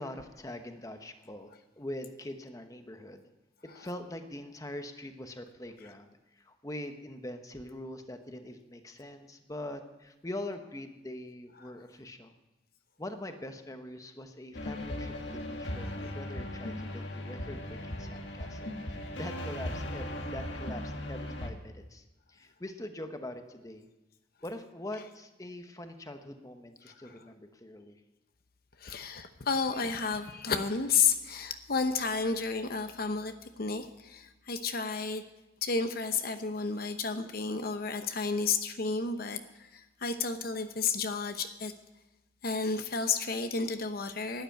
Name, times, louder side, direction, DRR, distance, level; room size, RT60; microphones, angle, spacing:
voice 1, 0.0-3.3 3.6-12.3 13.0-23.9 24.4-28.0, left 1 dB, 20° left, 7 dB, 1.0 m, -43 dB
sound 1, 14.5-21.5, left 1 dB, 85° left, 1.8 m, -38 dB
voice 2, 28.8-35.2 35.6-41.7 42.4-44.4, left 5 dB, 55° left, 8 dB, 0.9 m, -31 dB
12.0 x 9.9 x 9.2 m, 1.0 s
head